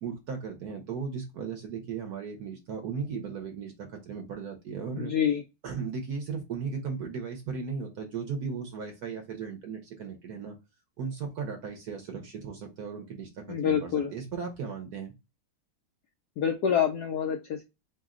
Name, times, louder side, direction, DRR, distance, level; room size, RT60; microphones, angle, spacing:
voice 1, 0.0-5.1 5.6-10.6 11.0-15.1, right 5 dB, 60° right, 1.0 m, -36 dB
voice 2, 5.0-5.4 13.5-14.1 16.4-17.6, left 8 dB, 80° left, 0.9 m, -27 dB
4.6 x 2.0 x 3.6 m
omnidirectional pair, 2.3 m